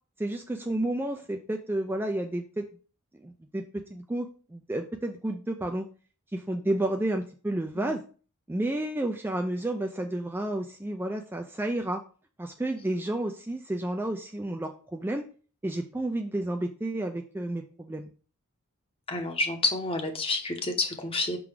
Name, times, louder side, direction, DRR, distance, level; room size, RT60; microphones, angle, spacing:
voice 1, 0.2-2.7 3.2-3.6 3.9-5.9 6.3-8.0 8.5-12.0 12.4-15.2 15.6-18.1, right 1 dB, 10° right, 3 dB, 0.3 m, -31 dB
voice 2, 19.1-21.4, left 3 dB, 25° left, 5 dB, 0.9 m, -29 dB
6.0 x 3.8 x 4.6 m, 0.39 s
head